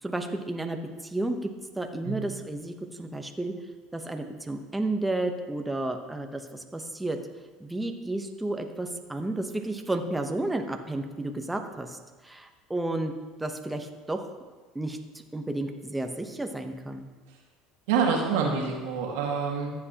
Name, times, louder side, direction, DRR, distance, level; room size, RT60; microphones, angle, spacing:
voice 1, 0.0-1.5 1.8-3.5 3.9-7.2 7.6-13.1 13.4-14.3 14.7-17.1, right 2 dB, 10° right, 4 dB, 0.8 m, -32 dB
voice 2, 17.9-19.7, right 5 dB, 85° right, 0 dB, 1.8 m, -27 dB
14.0 x 7.8 x 2.9 m, 1.3 s
supercardioid pair, 105°, 0 cm